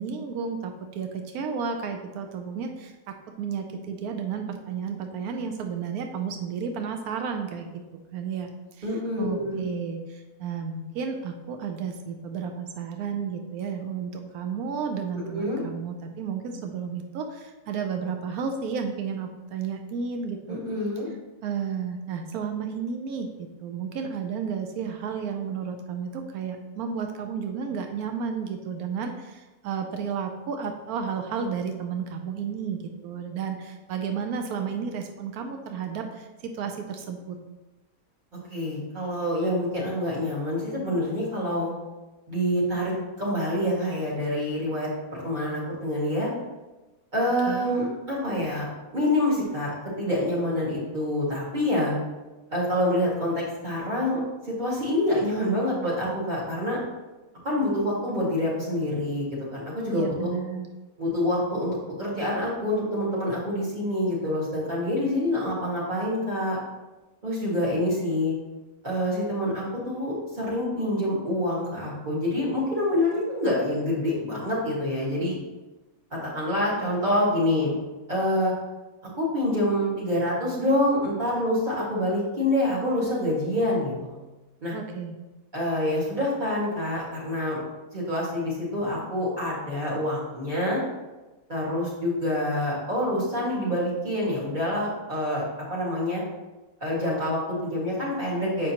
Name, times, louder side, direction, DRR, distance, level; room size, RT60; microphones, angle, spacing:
voice 1, 0.0-7.8 8.1-8.5 8.8-8.9 9.2-20.6 21.4-37.4 47.5-47.7 59.9-60.7 84.7-85.2, right 6 dB, 90° right, 5 dB, 1.1 m, -32 dB
voice 2, 8.8-9.6 15.1-15.6 20.5-21.1 38.5-41.7 42.3-46.3 47.1-48.7 48.9-51.9 52.5-54.2 54.6-56.8 57.4-60.4 61.0-66.6 67.2-68.3 68.8-75.4 76.1-77.7 78.1-78.5 79.2-84.2 84.6-84.8 85.5-87.6 87.9-90.8 91.5-95.4 95.7-96.2 96.8-98.7, left 1 dB, 30° right, -6 dB, 2.0 m, -26 dB
7.3 x 5.2 x 2.8 m, 1.1 s
omnidirectional pair, 1.5 m